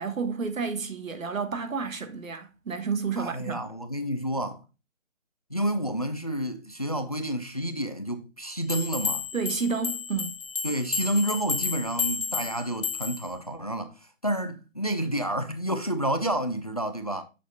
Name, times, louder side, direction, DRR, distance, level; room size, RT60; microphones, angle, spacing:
voice 1, 0.0-3.6 9.3-10.3, right 5 dB, 85° right, 1.5 m, -30 dB
voice 2, 3.2-4.6 5.5-9.2 10.6-17.2, right 1 dB, 30° left, 0.4 m, -29 dB
sound 1, 8.7-13.3, left 5 dB, 70° left, 1.6 m, -31 dB
6.9 x 6.0 x 2.3 m
hypercardioid pair, 165°, 39 cm